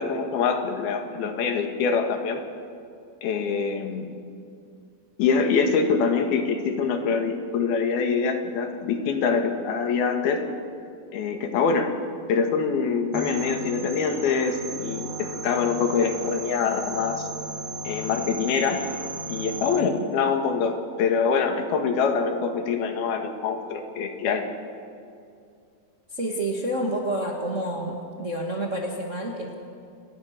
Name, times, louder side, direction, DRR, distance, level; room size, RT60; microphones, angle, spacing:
voice 1, 0.0-2.4 3.2-4.1 5.2-10.4 11.1-11.9 12.3-17.3 17.9-18.8 19.3-24.5, left 5 dB, 90° left, 5 dB, 3.7 m, -24 dB
sound 1, 13.1-19.8, right 2 dB, 85° right, 3.5 m, -35 dB
voice 2, 26.1-29.5, right 1 dB, 35° right, 0 dB, 1.3 m, -29 dB
28.5 x 18.0 x 6.6 m, 2.4 s
omnidirectional pair, 4.2 m